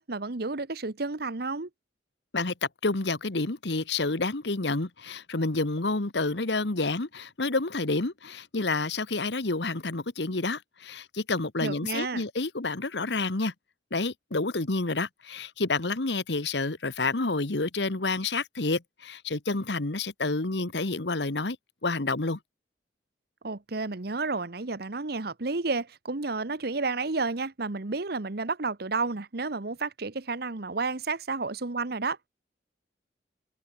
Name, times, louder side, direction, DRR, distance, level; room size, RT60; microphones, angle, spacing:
voice 1, 0.0-1.7 11.6-12.2 23.4-32.3, right 3 dB, 60° right, 1.1 m, -31 dB
voice 2, 2.3-13.5 13.9-21.6 21.8-22.4, left 3 dB, 70° left, 1.4 m, -29 dB
head